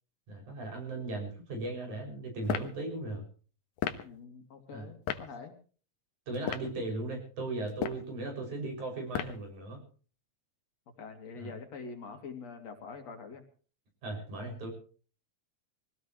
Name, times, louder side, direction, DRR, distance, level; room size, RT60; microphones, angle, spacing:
voice 1, 0.3-3.2 4.7-4.9 6.3-9.8 11.3-11.5 14.0-14.7, right 2 dB, 70° right, 2 dB, 8.0 m, -37 dB
sound 1, 2.4-2.7 3.8-4.1 5.1-5.3 6.3-6.7 7.7-8.1 9.1-9.5, left 10 dB, 80° left, 2.7 m, -33 dB
voice 2, 4.0-5.6 11.0-13.4, left 5 dB, 60° left, 5 dB, 3.5 m, -45 dB
23.5 x 17.5 x 3.1 m, 0.40 s
omnidirectional pair, 3.5 m